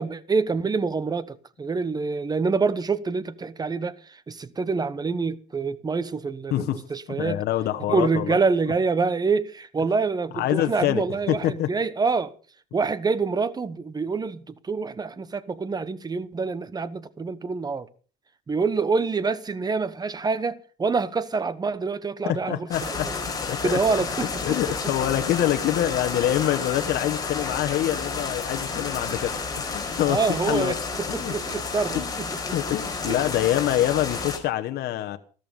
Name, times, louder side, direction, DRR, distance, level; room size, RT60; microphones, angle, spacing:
voice 1, 0.0-7.4 7.9-12.3 12.7-17.9 18.5-23.1 23.6-24.4 30.1-32.3 33.1-33.3, right 4 dB, 25° right, 1.1 m, -26 dB
voice 2, 6.5-8.4 10.3-11.7 22.2-23.1 23.4-24.0 24.4-30.2 30.5-30.7 31.1-31.3 31.9-32.1 32.5-35.2, left 13 dB, 70° left, 1.2 m, -26 dB
sound 1, 22.7-34.4, left 4 dB, 20° left, 5.1 m, -31 dB
14.5 x 13.5 x 5.4 m
cardioid pair, 110°, 17 cm